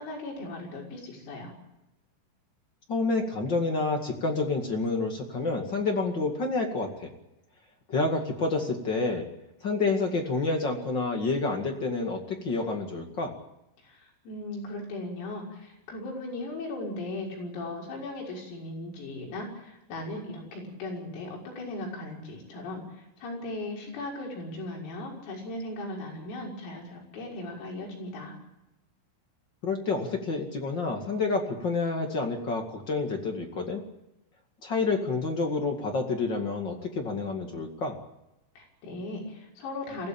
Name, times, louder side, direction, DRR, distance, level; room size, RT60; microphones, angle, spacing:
voice 1, 0.0-1.5 13.8-28.4 38.6-40.1, left 2 dB, 80° left, -1 dB, 8.6 m, -37 dB
voice 2, 2.9-7.1 7.9-9.3 9.6-13.3 29.6-33.8 34.6-38.0, left 3 dB, 55° left, 3 dB, 1.2 m, -28 dB
23.0 x 16.5 x 8.9 m, 0.91 s
omnidirectional pair, 6.0 m